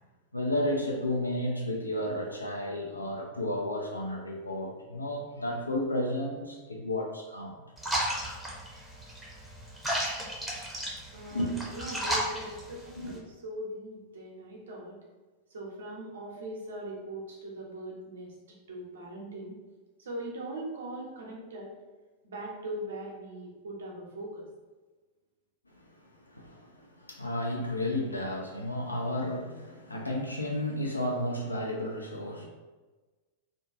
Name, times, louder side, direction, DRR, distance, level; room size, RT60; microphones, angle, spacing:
voice 1, 0.3-7.6 11.3-11.5 13.0-13.1 25.7-32.5, left 1 dB, 85° left, 0 dB, 0.4 m, -32 dB
sound 1, 7.8-13.2, right 1 dB, 5° right, 0.6 m, -34 dB
voice 2, 11.1-15.0 15.5-18.4 18.7-19.5 20.0-21.7 22.2-24.5, right 1 dB, 65° right, -3 dB, 0.6 m, -40 dB
2.5 x 2.2 x 2.4 m, 1.3 s
figure-of-eight pair, 90°, 0 cm